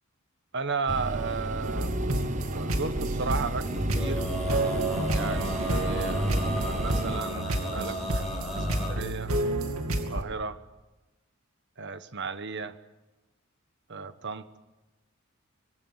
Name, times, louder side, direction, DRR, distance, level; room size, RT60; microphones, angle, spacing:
voice 1, 0.5-1.9 2.5-4.3 5.1-9.3 10.1-10.6 11.8-12.8 13.9-14.6, right 4 dB, 55° right, 11 dB, 1.3 m, -35 dB
sound 1, 0.9-7.2, right 2 dB, 35° right, 0.9 m, -34 dB
sound 2, 1.6-10.2, right 1 dB, 70° right, 2.7 m, -30 dB
Male singing, 3.6-8.9, equal, ahead, 5.6 m, -35 dB
25.5 x 22.0 x 8.1 m, 1.1 s
head